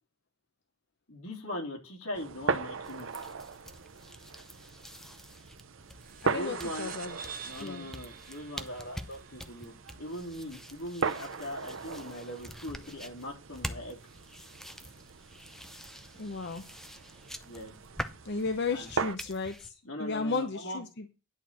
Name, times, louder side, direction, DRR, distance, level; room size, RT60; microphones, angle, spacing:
voice 1, 1.1-3.1 6.2-6.9 7.4-14.0 17.4-17.7 18.7-18.9 19.8-20.8, left 1 dB, 80° left, 0 dB, 3.3 m, -40 dB
sound 1, 2.1-19.2, right 4 dB, 65° right, 0.8 m, -39 dB
sound 2, 2.8-19.7, equal, ahead, 0.6 m, -46 dB
sound 3, 6.0-10.9, right 7 dB, 40° right, 1.0 m, -48 dB
voice 2, 6.2-7.2 7.6-7.9 16.2-16.6 18.2-19.7 20.0-21.1, left 4 dB, 50° left, 8 dB, 0.8 m, -34 dB
10.5 x 4.4 x 7.5 m, 0.30 s
head